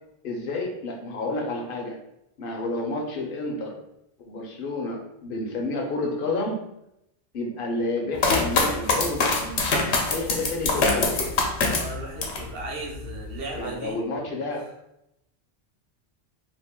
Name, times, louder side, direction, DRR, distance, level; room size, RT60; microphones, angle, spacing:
voice 1, 0.2-2.0 2.4-3.8 4.3-6.6 7.3-9.6 10.1-11.2 13.6-14.7, left 2 dB, 60° left, 1 dB, 0.8 m, -30 dB
sound 1, 8.2-12.5 12.9-13.6, left 3 dB, 85° left, 0.9 m, -24 dB
voice 2, 11.7-14.0 14.5-14.6, right 2 dB, 65° right, -1 dB, 1.0 m, -36 dB
2.7 x 2.4 x 3.6 m, 0.82 s
omnidirectional pair, 1.1 m